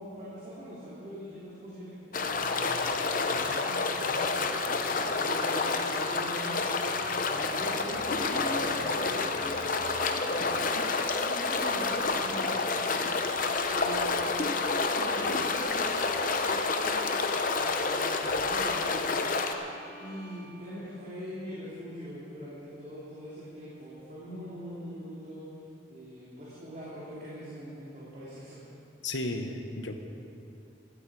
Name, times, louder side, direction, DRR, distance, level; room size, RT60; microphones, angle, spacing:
voice 1, 0.0-2.7 3.2-4.7 5.1-6.9 7.2-9.6 10.3-10.7 11.1-13.0 13.6-14.6 14.9-19.1 20.0-25.5 25.9-28.6, equal, 40° right, -9 dB, 2.9 m, -42 dB
sound 1, 2.1-19.5, left 3 dB, 45° left, 0.8 m, -29 dB
Bowed string instrument, 5.1-21.0, right 1 dB, 15° left, 1.8 m, -50 dB
voice 2, 29.0-29.9, left 2 dB, 80° left, 6 dB, 1.2 m, -33 dB
16.0 x 13.5 x 4.9 m, 2.6 s
head